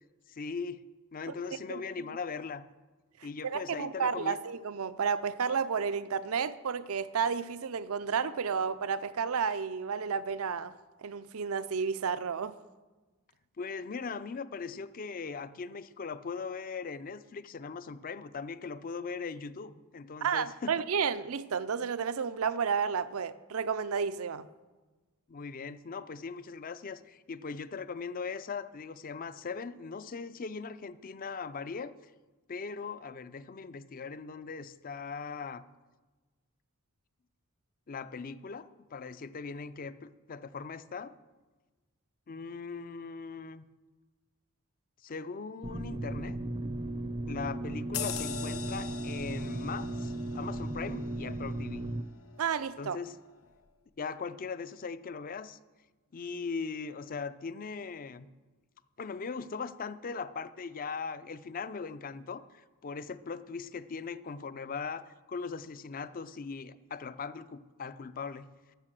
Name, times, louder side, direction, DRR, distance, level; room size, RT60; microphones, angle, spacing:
voice 1, 0.3-0.8 1.1-2.7 3.2-4.4 13.6-20.7 25.3-31.9 32.5-35.6 37.9-41.1 42.3-43.6 45.0-46.4 47.3-51.8 52.8-53.2 54.0-55.6 56.1-58.3 59.0-65.0 65.3-68.5, left 5 dB, 40° left, 0.4 m, -39 dB
voice 2, 3.4-10.7 11.0-12.6 20.2-24.5 52.4-53.0, right 6 dB, 75° right, 0.5 m, -31 dB
sound 1, 45.6-52.0, right 1 dB, 25° right, 0.5 m, -36 dB
sound 2, 47.9-52.9 53.3-53.5, left 8 dB, 75° left, 1.0 m, -42 dB
12.5 x 6.6 x 7.5 m
head